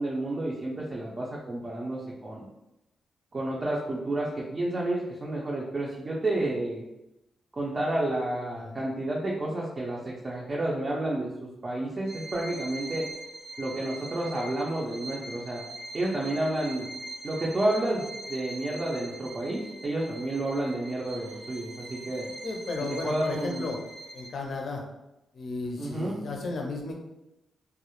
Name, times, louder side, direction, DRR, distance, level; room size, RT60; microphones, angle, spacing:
voice 1, 0.0-2.5 3.3-6.9 7.5-13.1 13.6-15.6 15.9-16.9 17.2-22.3 22.8-23.7 25.8-26.2, right 1 dB, 30° right, -4 dB, 0.4 m, -30 dB
Bowed string instrument, 12.1-24.6, right 2 dB, 85° right, 0.8 m, -42 dB
voice 2, 22.4-23.8 24.1-24.8 25.3-26.9, left 3 dB, 60° left, 1 dB, 0.5 m, -34 dB
2.1 x 2.0 x 2.9 m, 0.91 s
cardioid pair, 110°, 0 cm